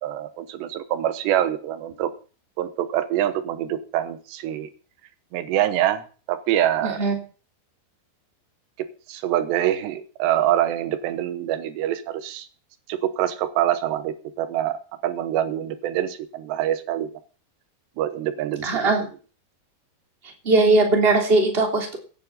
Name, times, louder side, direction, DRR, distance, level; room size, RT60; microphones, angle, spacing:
voice 1, 0.0-2.1 2.6-4.7 5.3-7.0 8.8-12.5 12.9-14.8 15.0-17.1 18.0-19.1, right 12 dB, 85° right, 12 dB, 3.2 m, -25 dB
voice 2, 6.8-7.2 18.6-19.1 20.4-22.0, right 3 dB, 15° right, 3 dB, 2.8 m, -19 dB
16.5 x 9.6 x 5.6 m, 0.37 s
omnidirectional pair, 4.9 m